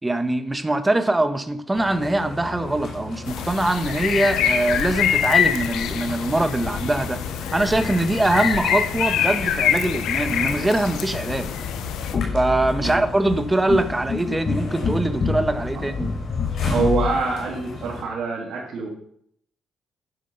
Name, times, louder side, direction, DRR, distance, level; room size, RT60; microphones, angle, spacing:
voice 1, 0.0-7.2 7.5-11.5 12.3-16.1, right 2 dB, 15° right, 8 dB, 1.5 m, -22 dB
sound 1, 1.7-18.0, left 2 dB, 70° left, 6.0 m, -36 dB
sound 2, 3.3-12.1, left 9 dB, 85° left, 1.1 m, -25 dB
sound 3, 12.1-17.1, left 5 dB, 45° left, 1.5 m, -27 dB
voice 2, 16.6-18.9, right 4 dB, 70° right, -5 dB, 3.3 m, -25 dB
10.5 x 10.0 x 5.7 m, 0.69 s
cardioid pair, 90°, 0 cm